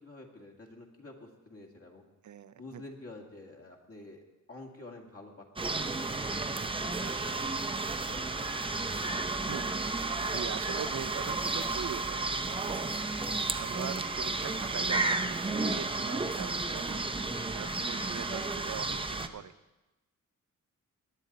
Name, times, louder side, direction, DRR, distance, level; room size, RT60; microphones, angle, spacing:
voice 1, 0.0-2.0 2.6-4.2 4.5-5.4 5.7-5.8 6.5-7.1 8.1-9.1 18.2-18.6, left 2 dB, 45° left, 1 dB, 2.1 m, -49 dB
voice 2, 2.2-2.8 6.5-7.4 8.1-8.3 9.5-9.7 10.2-12.9 13.5-17.1 17.5-19.5, right 9 dB, 65° right, 13 dB, 0.6 m, -42 dB
sound 1, 5.6-19.3, right 3 dB, 15° right, 0.6 m, -32 dB
18.5 x 10.5 x 4.1 m, 1.0 s
wide cardioid pair, 120°, 32 cm